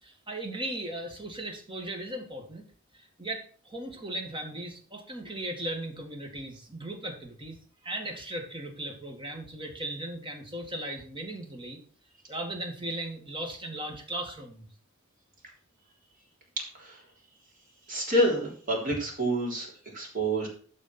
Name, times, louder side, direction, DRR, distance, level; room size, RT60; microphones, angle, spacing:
voice 1, 0.0-2.6 2.9-7.6 7.8-11.8 12.3-14.7, right 1 dB, 25° right, 3 dB, 2.0 m, -37 dB
voice 2, 17.9-19.7 19.9-20.5, right 1 dB, 40° right, -1 dB, 3.4 m, -27 dB
12.0 x 4.2 x 6.0 m, 0.43 s
head